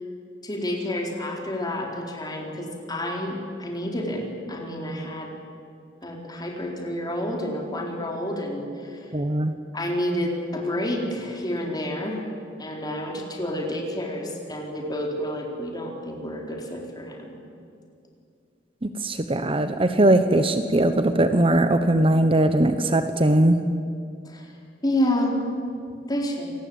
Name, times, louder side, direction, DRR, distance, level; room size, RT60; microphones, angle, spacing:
voice 1, 0.4-5.3 6.0-9.1 9.7-12.2 12.6-17.4 24.2-24.5 24.8-25.4 26.1-26.5, left 1 dB, 25° left, 0 dB, 4.2 m, -29 dB
voice 2, 9.1-9.5 18.8-23.6, right 1 dB, 30° right, 9 dB, 1.0 m, -20 dB
27.5 x 19.0 x 8.8 m, 2.4 s
head